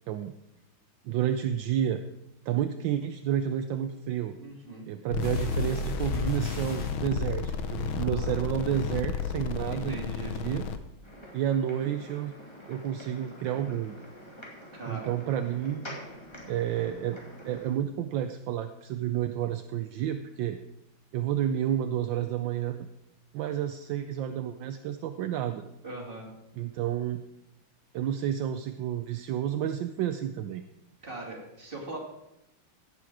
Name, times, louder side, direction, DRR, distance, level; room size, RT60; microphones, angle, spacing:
voice 1, 1.0-2.0 2.5-4.4 4.9-10.6 11.3-12.3 12.7-13.9 14.9-16.0 16.5-17.2 17.4-20.6 21.1-22.8 23.3-25.6 26.6-27.2 27.9-30.6, right 10 dB, 75° right, 8 dB, 1.3 m, -30 dB
voice 2, 4.4-4.8 8.0-8.8 9.7-10.3 14.7-15.1 25.8-26.3 31.0-32.0, right 2 dB, 25° right, -2 dB, 2.9 m, -41 dB
sound 1, 5.1-10.8, left 6 dB, 90° left, 1.7 m, -32 dB
sound 2, 5.2-7.0 7.9-8.0 8.4-8.5, left 3 dB, 55° left, 2.7 m, -37 dB
sound 3, 11.0-17.7, equal, 15° left, 2.3 m, -46 dB
16.0 x 7.6 x 4.8 m, 0.87 s
omnidirectional pair, 2.2 m